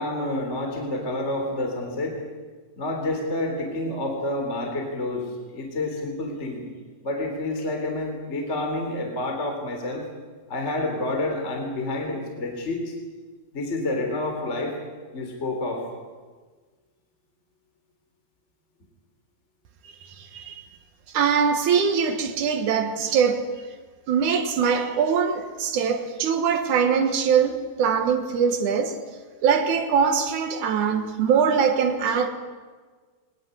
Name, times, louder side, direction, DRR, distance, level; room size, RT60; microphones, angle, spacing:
voice 1, 0.0-2.2 2.8-6.6 7.0-10.0 10.5-12.9 13.5-14.7 15.1-15.9, left 2 dB, 15° left, 2.9 m, -28 dB
voice 2, 20.2-20.6 21.1-23.6 24.1-29.0 29.4-32.3, right 6 dB, 75° right, 1.8 m, -22 dB
22.0 x 20.0 x 9.9 m
omnidirectional pair, 6.0 m